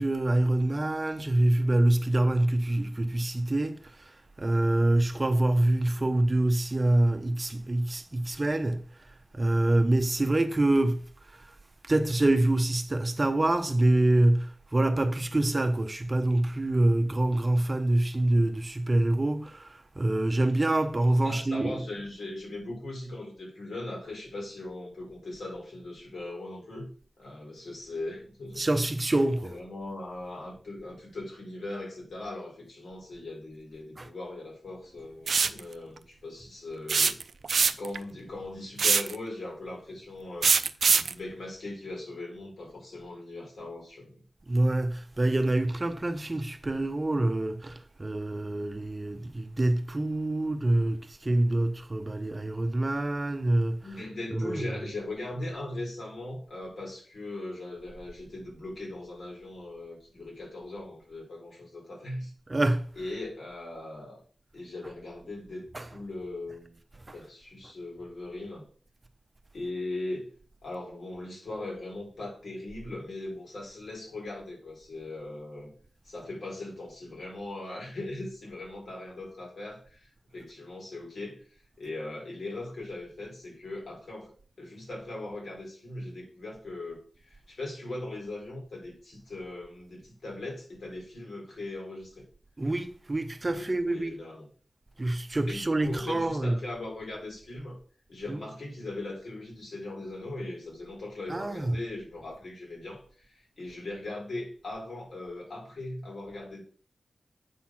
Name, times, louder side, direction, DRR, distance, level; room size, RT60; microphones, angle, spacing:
voice 1, 0.0-9.1 9.3-11.5 11.8-21.8 28.5-29.6 34.0-34.1 44.5-54.0 54.3-54.8 62.5-63.1 65.7-66.0 67.1-67.2 92.6-94.2 95.0-96.6 98.3-98.4 101.3-101.8, right 1 dB, 30° right, 0.8 m, -26 dB
voice 2, 21.2-26.9 27.2-28.7 29.4-37.2 37.8-40.5 40.9-44.2 53.8-62.3 63.0-64.2 64.5-66.8 67.1-68.6 69.5-70.3 70.6-75.7 76.0-81.4 81.8-84.3 84.6-92.2 93.5-94.5 95.5-97.8 98.1-106.6, left 2 dB, 75° left, 4.2 m, -39 dB
sound 1, 35.3-35.6 36.9-38.0 38.8-39.1 40.4-41.1, right 5 dB, 75° right, 0.4 m, -22 dB
8.5 x 4.1 x 5.9 m
wide cardioid pair, 80°, 0 cm